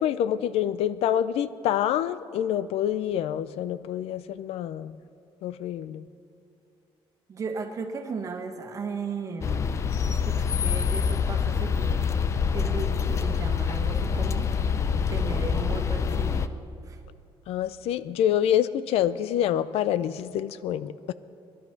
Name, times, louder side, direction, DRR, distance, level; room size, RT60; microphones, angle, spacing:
voice 1, 0.0-5.0 5.4-6.0 17.5-21.1, left 10 dB, 80° left, 16 dB, 0.5 m, -27 dB
voice 2, 7.3-9.6 10.1-12.0 12.5-14.5 15.1-16.5 16.9-17.0, right 5 dB, 30° right, 4 dB, 1.3 m, -35 dB
sound 1, 9.4-16.5, left 6 dB, 30° left, 0.5 m, -26 dB
20.0 x 12.0 x 5.9 m, 2.5 s
cardioid pair, 175°, 10 cm